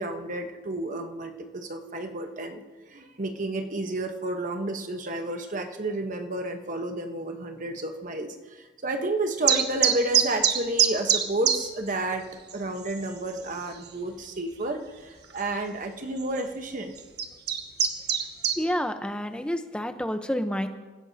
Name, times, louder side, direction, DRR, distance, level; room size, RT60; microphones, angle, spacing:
voice 1, 0.0-12.3 12.5-16.9, right 2 dB, 45° right, 5 dB, 1.1 m, -31 dB
sound 1, 9.5-11.6 11.9-12.0 12.5-12.6 12.8-13.3 13.9-14.0 15.3-15.4 16.2-16.4 17.0-18.6, right 8 dB, 60° right, 1.3 m, -23 dB
voice 2, 18.6-20.7, equal, 5° left, 7 dB, 0.8 m, -29 dB
27.0 x 16.0 x 2.8 m, 1.3 s
head